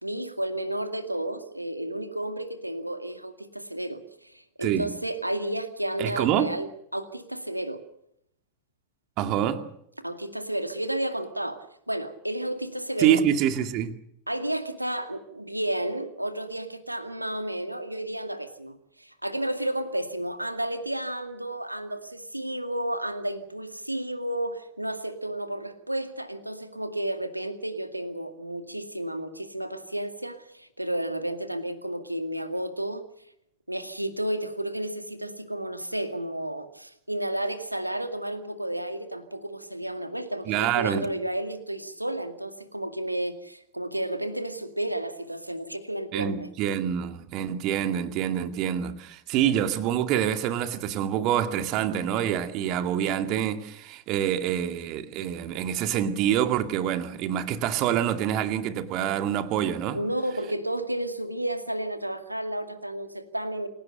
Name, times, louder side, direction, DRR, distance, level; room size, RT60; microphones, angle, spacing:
voice 1, 0.0-7.8 10.0-13.2 14.3-33.0 33.7-46.5 59.9-63.7, right 1 dB, 85° right, 2.1 m, -32 dB
voice 2, 6.0-6.5 9.2-9.6 13.0-13.9 40.5-41.1 46.1-60.0, right 10 dB, 40° right, 2.3 m, -26 dB
27.5 x 17.0 x 6.7 m
figure-of-eight pair, 90°, 0 cm